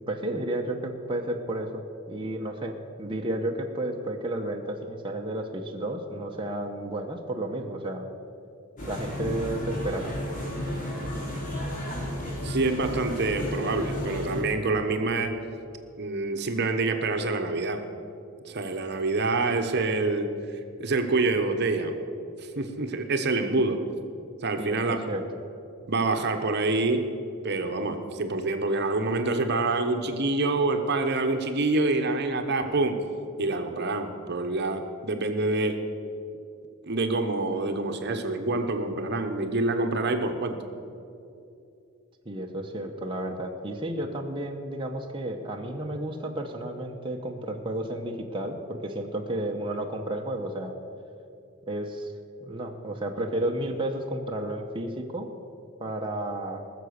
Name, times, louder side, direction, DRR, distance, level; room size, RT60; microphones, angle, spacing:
voice 1, 0.0-8.1 8.9-10.1 24.6-25.2 42.2-50.8 51.7-52.1 52.4-55.3 55.8-56.6, right 1 dB, 25° right, 1 dB, 0.9 m, -32 dB
sound 1, 8.8-14.4, equal, 40° left, 2.5 m, -32 dB
voice 2, 12.4-15.4 16.0-17.8 18.4-20.3 20.8-21.9 22.4-23.8 24.4-25.0 25.9-27.0 27.4-33.0 33.4-35.8 36.8-40.6, right 3 dB, 55° right, 6 dB, 1.0 m, -26 dB
19.5 x 6.9 x 6.6 m, 2.6 s
head